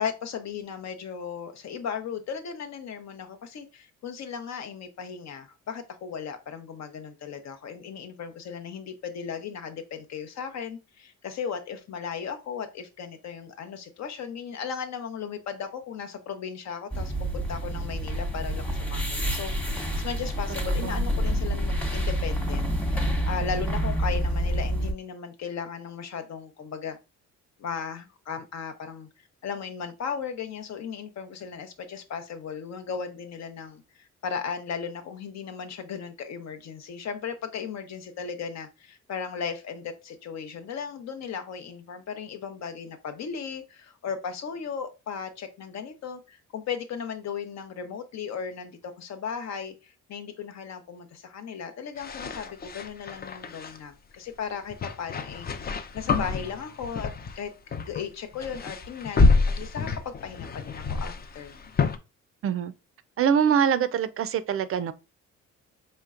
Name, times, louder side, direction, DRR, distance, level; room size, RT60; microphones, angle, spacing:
voice 1, 0.0-27.0 27.6-29.1 29.4-55.5 55.9-57.1 57.4-57.5 57.8-59.3 59.6-61.5, left 6 dB, 60° left, 0.8 m, -36 dB
sound 1, 16.9-24.9, equal, 5° left, 1.0 m, -28 dB
sound 2, 52.0-53.8 54.7-57.4 57.7-58.1 58.3-62.0, left 3 dB, 30° left, 0.5 m, -27 dB
voice 2, 63.2-64.9, right 8 dB, 50° right, 0.4 m, -24 dB
4.3 x 3.2 x 2.4 m
cardioid pair, 90°, 30 cm